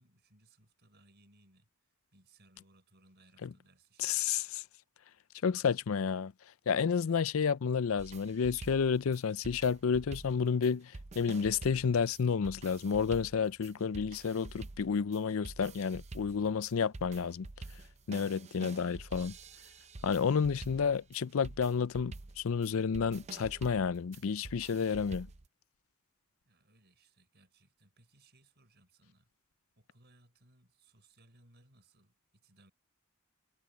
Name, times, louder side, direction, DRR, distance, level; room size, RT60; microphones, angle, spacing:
voice 1, 0.0-1.7 2.1-4.5 7.0-7.1 26.4-29.3 29.8-32.7, right 2 dB, 50° right, 5.9 m, -65 dB
voice 2, 4.0-4.6 5.4-6.3 6.7-17.5 18.1-19.3 20.0-25.3, left 6 dB, 65° left, 0.5 m, -31 dB
sound 1, 8.0-25.5, right 3 dB, 30° right, 0.6 m, -48 dB
head